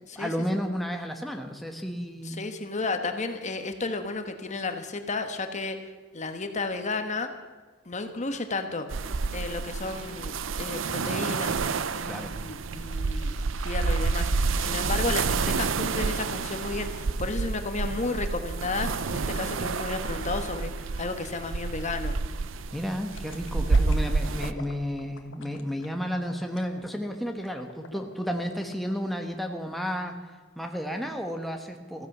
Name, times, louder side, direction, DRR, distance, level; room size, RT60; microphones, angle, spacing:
voice 1, 0.1-2.4 12.0-12.3 22.7-30.1 30.6-32.1, equal, ahead, 3 dB, 1.1 m, -32 dB
voice 2, 2.2-5.8 6.1-7.3 7.8-8.9 9.3-20.7 21.0-22.1, left 3 dB, 40° left, 7 dB, 1.3 m, -33 dB
sound 1, 8.9-24.5, right 4 dB, 80° right, 0.6 m, -29 dB
sound 2, 23.1-28.9 29.3-29.4, left 3 dB, 70° left, 1.6 m, -45 dB
15.0 x 14.5 x 6.0 m, 1.4 s
head